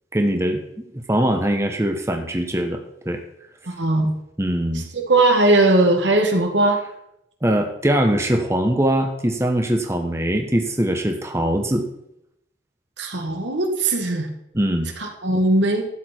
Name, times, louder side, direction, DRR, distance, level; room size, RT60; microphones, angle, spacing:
voice 1, 0.1-3.2 4.4-4.8 7.4-11.9 14.5-14.9, right 1 dB, 15° right, 4 dB, 1.0 m, -22 dB
voice 2, 3.7-4.1 5.1-6.8 13.0-14.3 15.0-15.9, right 2 dB, 85° right, 3 dB, 1.9 m, -18 dB
12.5 x 8.4 x 4.4 m, 0.79 s
head